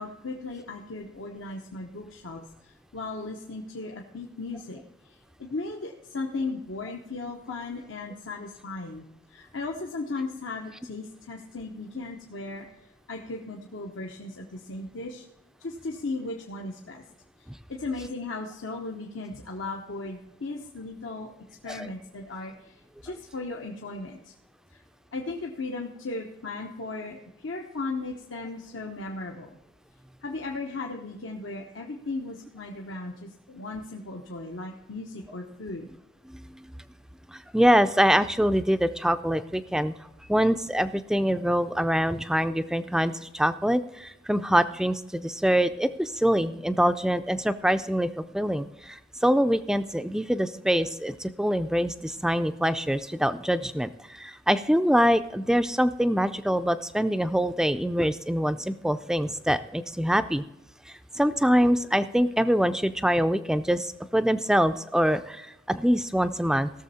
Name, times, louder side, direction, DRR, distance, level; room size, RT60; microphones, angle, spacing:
voice 1, 0.0-9.0 9.3-12.7 13.1-15.2 15.6-17.0 17.7-21.3 21.6-24.3 24.7-24.8 25.1-29.6 30.2-35.9, left 3 dB, 85° left, 1 dB, 1.0 m, -36 dB
voice 2, 36.3-36.6 37.3-39.9 40.3-60.4 60.9-66.7, equal, 5° right, 11 dB, 0.4 m, -24 dB
17.0 x 6.9 x 4.2 m, 0.91 s
head